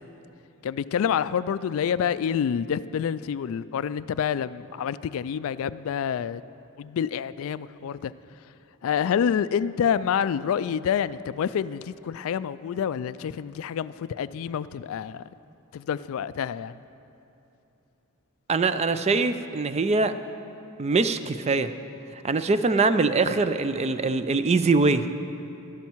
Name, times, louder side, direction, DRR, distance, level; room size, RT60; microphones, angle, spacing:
voice 1, 0.6-6.4 6.8-8.1 8.8-15.2 15.7-16.7, left 8 dB, 65° left, 17 dB, 0.3 m, -27 dB
voice 2, 18.5-20.1 20.8-21.7 22.2-25.1, right 3 dB, 30° right, 11 dB, 0.4 m, -23 dB
13.0 x 12.0 x 4.6 m, 2.9 s
head